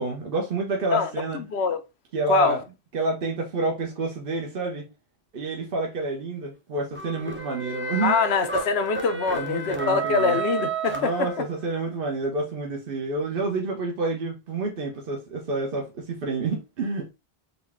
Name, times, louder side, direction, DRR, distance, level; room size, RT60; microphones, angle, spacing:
voice 1, 0.0-1.4 2.1-2.6 2.9-4.8 5.3-8.2 9.3-10.4 10.9-17.1, right 3 dB, 60° right, 1.0 m, -28 dB
voice 2, 0.9-1.8 2.3-2.6 8.0-11.3, left 5 dB, 80° left, 0.9 m, -24 dB
sound 1, 6.9-11.8, right 4 dB, 15° right, 0.5 m, -31 dB
4.0 x 2.2 x 3.4 m
omnidirectional pair, 1.1 m